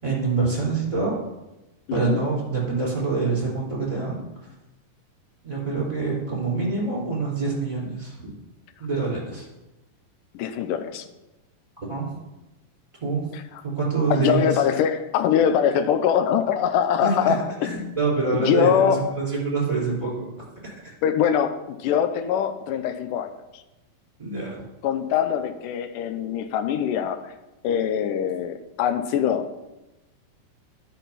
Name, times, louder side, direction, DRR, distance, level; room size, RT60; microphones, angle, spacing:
voice 1, 0.0-1.2 1.9-4.2 5.4-8.3 8.8-9.4 11.9-12.2 13.0-13.3 13.6-14.6 17.0-17.3 17.6-20.7 24.2-24.5, right 4 dB, 10° right, -4 dB, 3.3 m, -26 dB
voice 2, 1.9-2.3 10.3-11.1 13.3-13.4 14.1-18.0 18.3-19.2 21.0-23.6 24.8-27.3 27.6-29.5, left 8 dB, 75° left, 9 dB, 2.2 m, -23 dB
10.5 x 6.1 x 5.8 m, 0.99 s
omnidirectional pair, 4.1 m